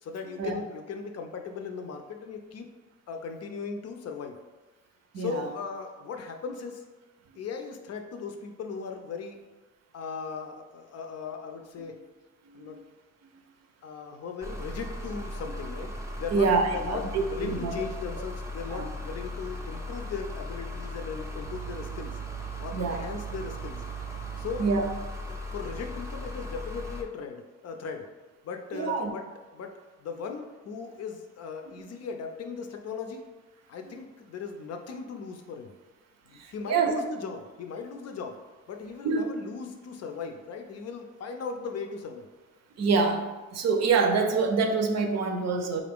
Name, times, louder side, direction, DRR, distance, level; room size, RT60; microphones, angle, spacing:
voice 1, 0.0-2.7 3.1-4.4 5.2-6.8 7.4-9.4 9.9-12.0 12.5-12.8 13.8-22.2 22.6-23.8 24.4-24.7 25.3-28.1 28.4-29.2 29.5-29.7 30.0-33.3 33.7-35.7 36.3-38.4 38.7-42.3, left 5 dB, 55° left, 5 dB, 0.5 m, -38 dB
voice 2, 5.1-5.5 11.8-11.9 12.5-12.8 16.3-17.7 18.7-18.9 22.7-23.0 24.6-24.8 28.7-29.1 31.7-31.8 33.9-34.0 36.4-36.9 39.0-39.3 42.8-43.2 43.5-45.8, right 4 dB, 60° right, 4 dB, 0.6 m, -26 dB
sound 1, 14.4-27.0, equal, 10° right, 0.5 m, -37 dB
3.8 x 2.5 x 3.5 m, 1.2 s
cardioid pair, 90°, 30 cm